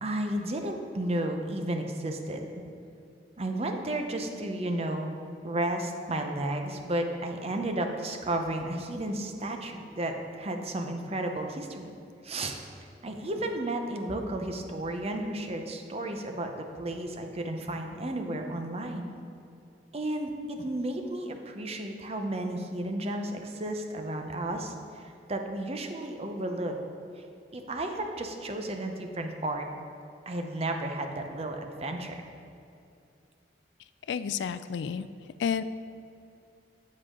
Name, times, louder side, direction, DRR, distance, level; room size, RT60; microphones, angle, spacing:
voice 1, 0.0-2.5 3.4-5.1 5.4-11.9 12.2-19.1 19.9-26.7 27.2-27.3 27.5-29.7 30.3-32.2, right 1 dB, 35° right, 4 dB, 0.7 m, -33 dB
voice 2, 34.1-35.1 35.4-35.6, left 7 dB, 75° left, 13 dB, 0.3 m, -30 dB
8.2 x 7.5 x 3.7 m, 2.6 s
head